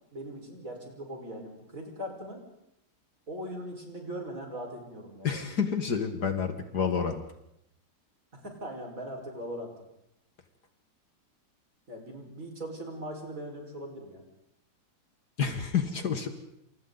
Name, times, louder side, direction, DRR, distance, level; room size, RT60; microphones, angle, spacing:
voice 1, 0.1-2.4 3.3-5.3 8.3-9.7 11.9-14.2, right 1 dB, 40° right, 1 dB, 5.6 m, -40 dB
voice 2, 5.2-7.2 15.4-16.3, left 6 dB, 55° left, 6 dB, 2.1 m, -29 dB
29.0 x 28.0 x 4.1 m, 0.80 s
omnidirectional pair, 2.1 m